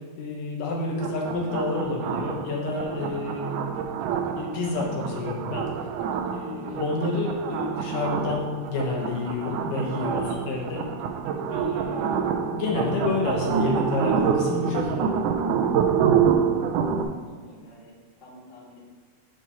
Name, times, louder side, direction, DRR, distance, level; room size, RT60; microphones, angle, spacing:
voice 1, 0.2-3.7 4.4-5.6 6.3-10.8 11.5-15.1, left 3 dB, 70° left, -1 dB, 2.5 m, -29 dB
sound 1, 1.0-17.0, right 7 dB, 85° right, 1.8 m, -27 dB
voice 2, 17.3-18.8, left 1 dB, 90° left, -5 dB, 0.4 m, -50 dB
10.5 x 4.8 x 3.0 m, 1.5 s
omnidirectional pair, 4.2 m